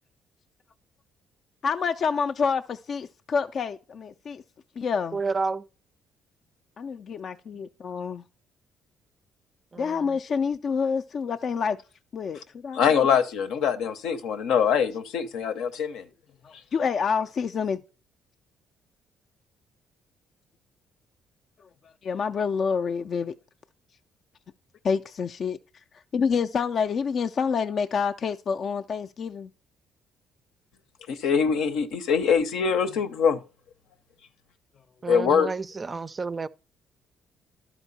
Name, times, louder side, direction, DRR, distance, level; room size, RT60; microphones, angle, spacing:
voice 1, 1.6-4.4 4.8-5.2 6.8-8.2 9.8-11.8 12.1-12.9 16.4-17.8 22.0-23.3 24.8-25.6 26.1-29.5, left 6 dB, 50° left, 0.3 m, -27 dB
voice 2, 5.1-5.6 9.7-10.2 35.0-36.5, right 4 dB, 30° right, 0.4 m, -30 dB
voice 3, 12.7-16.1 31.1-33.4 35.1-35.5, left 7 dB, 85° left, 0.7 m, -23 dB
12.0 x 4.5 x 4.1 m
cardioid pair, 90°, 0 cm